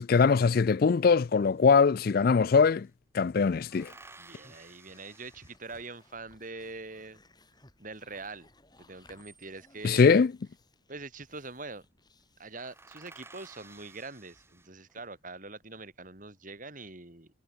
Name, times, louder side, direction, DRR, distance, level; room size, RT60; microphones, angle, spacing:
voice 1, 0.0-2.9 3.1-3.9 9.8-10.3, left 5 dB, 50° left, 0.4 m, -22 dB
sound 1, 1.6-1.7 1.9-3.0 3.7-6.2 8.9-9.9 11.0-11.4 11.7-11.9 12.2-12.3 12.5-15.1 15.7-16.3, right 3 dB, 10° right, 2.3 m, -55 dB
sound 2, 3.5-15.2, left 2 dB, 20° left, 7.8 m, -63 dB
voice 2, 4.2-7.2 7.8-8.5 8.8-10.2 10.9-11.8 12.4-17.3, right 3 dB, 40° right, 3.3 m, -43 dB
head